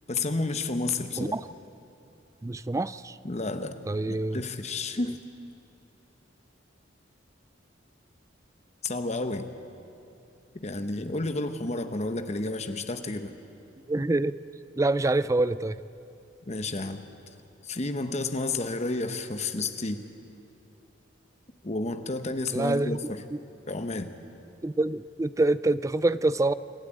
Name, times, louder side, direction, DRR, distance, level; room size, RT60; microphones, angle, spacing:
voice 1, 0.1-1.4 3.2-3.8 4.1-5.2 8.8-9.5 10.6-13.3 16.5-17.0 17.6-20.0 21.6-23.0 23.7-24.1, left 2 dB, 35° left, 9 dB, 1.1 m, -31 dB
voice 2, 2.4-3.2 3.9-4.4 13.9-14.4 14.8-15.8 22.5-23.0 23.3-23.4 24.6-26.5, right 2 dB, 15° right, 16 dB, 0.4 m, -26 dB
27.0 x 12.5 x 9.0 m, 2.9 s
head